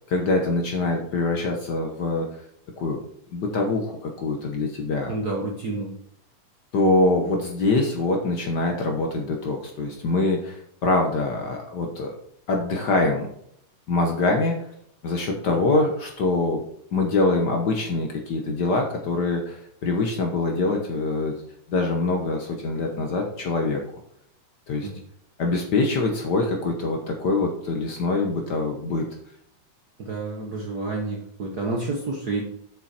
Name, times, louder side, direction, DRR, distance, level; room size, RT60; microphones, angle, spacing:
voice 1, 0.1-2.4 2.8-3.0 3.3-5.1 6.7-12.1 12.5-13.3 13.9-14.6 15.0-16.6 16.9-21.3 21.7-23.8 24.7-24.9 25.4-29.1, left 2 dB, 80° left, 2 dB, 0.9 m, -24 dB
voice 2, 5.1-5.9 15.7-15.8 24.8-24.9 30.0-32.4, right 3 dB, 65° right, -1 dB, 0.9 m, -29 dB
7.4 x 7.0 x 4.3 m, 0.69 s
omnidirectional pair, 3.4 m